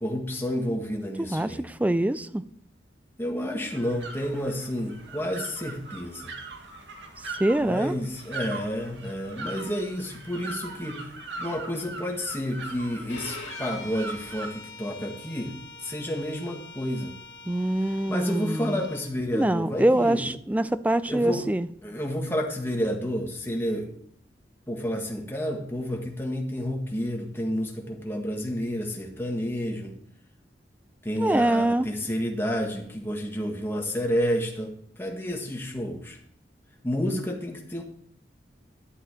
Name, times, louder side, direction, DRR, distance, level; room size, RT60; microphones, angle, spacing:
voice 1, 0.0-1.7 3.2-6.3 7.6-11.1 11.4-15.5 15.8-17.1 18.1-20.2 21.1-21.5 21.8-23.9 24.7-29.9 31.0-34.7 35.0-36.2 36.8-37.8, equal, 15° left, 0 dB, 1.7 m, -30 dB
voice 2, 1.3-2.4 7.4-7.9 17.5-18.8 19.3-21.7 31.2-31.9, right 1 dB, 10° right, 14 dB, 0.3 m, -24 dB
sound 1, 3.6-14.5, right 3 dB, 90° right, 1.8 m, -40 dB
Bowed string instrument, 13.1-19.1, left 4 dB, 80° left, 1.8 m, -44 dB
12.0 x 7.6 x 4.4 m, 0.66 s
head